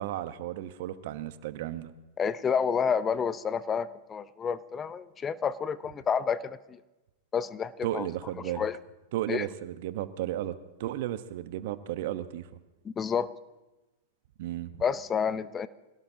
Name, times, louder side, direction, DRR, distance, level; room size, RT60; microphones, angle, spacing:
voice 1, 0.0-1.9 7.8-8.6 9.1-12.5 14.4-14.8, right 13 dB, 60° right, 12 dB, 1.0 m, -34 dB
voice 2, 2.2-6.8 7.3-8.1 8.4-8.8 9.3-9.5 12.8-13.3 14.8-15.7, left 6 dB, 25° left, 15 dB, 0.7 m, -29 dB
25.5 x 17.0 x 2.8 m, 1.1 s
hypercardioid pair, 105°, 0 cm